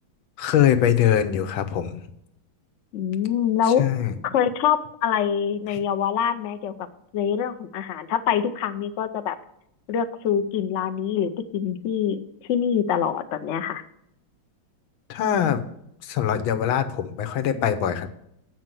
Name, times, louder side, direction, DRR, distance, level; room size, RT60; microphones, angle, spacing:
voice 1, 0.4-2.0 3.8-4.1 5.7-5.8 15.1-15.7 16.0-18.1, left 10 dB, 90° left, 8 dB, 1.6 m, -22 dB
voice 2, 2.9-3.9 4.2-6.8 7.1-9.4 9.9-12.2 12.5-13.8, left 8 dB, 75° left, 9 dB, 0.6 m, -24 dB
7.7 x 5.5 x 7.5 m, 0.77 s
omnidirectional pair, 2.1 m